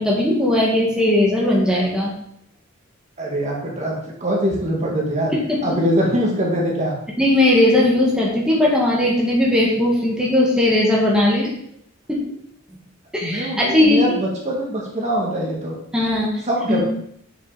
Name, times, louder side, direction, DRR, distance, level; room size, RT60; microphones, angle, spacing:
voice 1, 0.0-2.1 5.3-5.4 7.2-11.5 12.1-12.2 13.1-14.2 15.9-16.3 16.7-16.8, left 1 dB, 5° right, -5 dB, 1.8 m, -18 dB
voice 2, 3.2-5.3 5.6-6.9 13.2-15.8 16.5-16.8, equal, 35° right, -2 dB, 2.0 m, -23 dB
7.6 x 7.0 x 4.2 m, 0.69 s
head